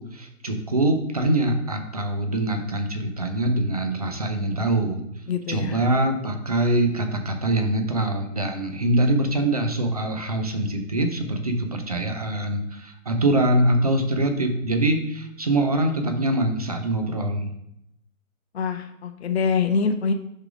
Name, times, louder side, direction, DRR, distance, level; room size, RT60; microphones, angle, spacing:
voice 1, 0.0-5.0 5.5-17.5, right 1 dB, 30° right, 5 dB, 0.5 m, -24 dB
voice 2, 5.3-5.9 18.5-20.1, left 5 dB, 50° left, 6 dB, 0.6 m, -24 dB
6.3 x 3.8 x 4.9 m, 0.78 s
hypercardioid pair, 160°, 42 cm